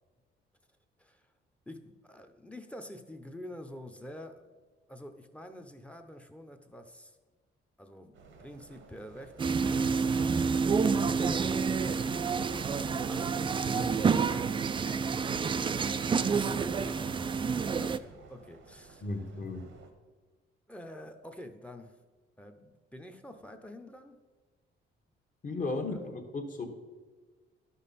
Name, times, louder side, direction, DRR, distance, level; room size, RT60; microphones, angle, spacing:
voice 1, 1.0-1.3 1.7-4.5 4.9-7.2 7.8-12.7 13.1-19.1 20.7-22.0 22.4-24.2 25.9-26.0, left 1 dB, 5° left, 7 dB, 0.7 m, -47 dB
sound 1, 8.1-19.9, right 4 dB, 80° right, 1.1 m, -54 dB
sound 2, 9.4-18.0, right 5 dB, 25° right, 0.3 m, -28 dB
voice 2, 19.0-19.7 25.4-26.7, left 3 dB, 40° left, 5 dB, 1.3 m, -35 dB
11.5 x 5.5 x 4.2 m, 1.4 s
cardioid pair, 90°, 20 cm